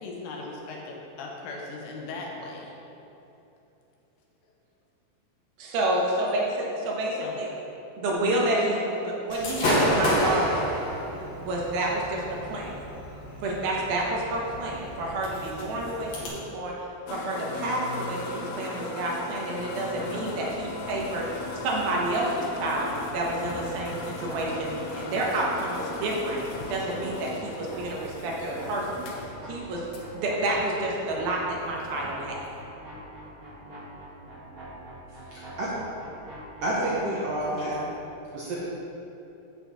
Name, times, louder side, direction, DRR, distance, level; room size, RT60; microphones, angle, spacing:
voice 1, 0.0-2.8 7.2-7.4 8.2-8.5 34.0-34.1 37.5-37.8, left 3 dB, 75° left, -1 dB, 2.6 m, -38 dB
voice 2, 5.6-7.5 8.0-10.6 11.4-12.2 12.5-12.7 13.4-16.7 17.1-26.4 26.7-29.1 29.4-29.8 30.1-32.4, right 1 dB, 90° right, -3 dB, 3.1 m, -29 dB
Gunshot gunfire / Fireworks, 9.3-16.3, equal, 55° left, 2.6 m, -30 dB
sound 1, 17.1-32.6, left 4 dB, 90° left, 2.6 m, -39 dB
sound 2, 19.8-37.9, right 1 dB, 40° right, 1.3 m, -44 dB
voice 3, 35.3-35.7 36.6-37.7 38.3-38.6, right 1 dB, 70° right, -7 dB, 1.6 m, -29 dB
8.1 x 7.7 x 4.1 m, 3.0 s
omnidirectional pair, 4.1 m